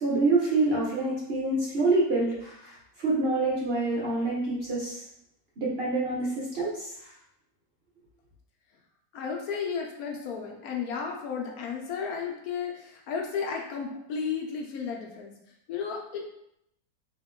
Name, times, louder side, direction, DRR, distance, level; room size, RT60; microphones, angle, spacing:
voice 1, 0.0-5.0 5.6-6.9, right 2 dB, 50° right, -5 dB, 0.8 m, -26 dB
voice 2, 9.1-16.2, left 6 dB, 70° left, 1 dB, 1.0 m, -33 dB
3.5 x 2.8 x 3.6 m, 0.79 s
omnidirectional pair, 1.7 m